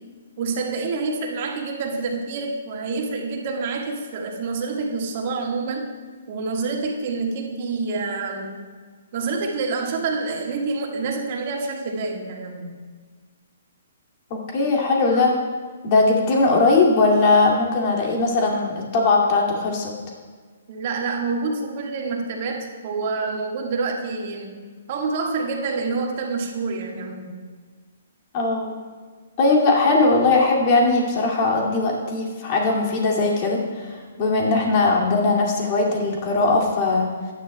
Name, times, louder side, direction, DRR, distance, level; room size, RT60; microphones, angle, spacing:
voice 1, 0.4-5.9 6.3-8.7 9.1-12.8 20.7-24.6 24.9-27.4, right 4 dB, 45° right, 1 dB, 1.6 m, -27 dB
voice 2, 14.3-15.4 15.8-19.9 28.3-28.7 29.4-37.1, left 3 dB, 40° left, -2 dB, 2.3 m, -19 dB
15.0 x 10.0 x 2.2 m, 1.5 s
figure-of-eight pair, 130°, 0 cm